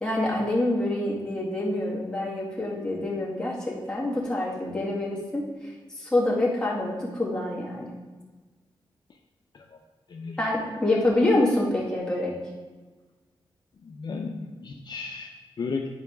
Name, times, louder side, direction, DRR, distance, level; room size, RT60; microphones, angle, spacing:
voice 1, 0.0-7.9 10.4-12.3, left 1 dB, 10° left, -6 dB, 2.1 m, -26 dB
voice 2, 13.8-15.9, left 4 dB, 50° left, 1 dB, 0.6 m, -34 dB
10.5 x 4.8 x 3.6 m, 1.3 s
wide cardioid pair, 130°, 9 cm